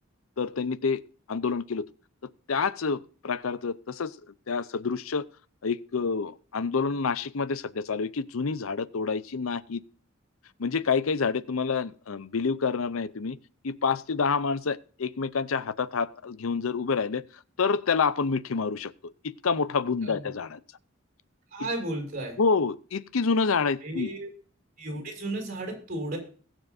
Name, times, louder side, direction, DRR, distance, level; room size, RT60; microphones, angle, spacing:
voice 1, 0.4-1.0 1.3-1.8 2.5-4.2 4.5-5.2 5.6-9.8 10.6-13.4 13.6-17.2 17.6-18.9 19.2-20.6 21.6-21.7 22.4-24.1, left 5 dB, 75° left, 0.6 m, -28 dB
voice 2, 21.5-22.4 23.8-24.3 24.8-26.2, right 1 dB, 40° right, 5.6 m, -33 dB
21.5 x 7.3 x 2.6 m
head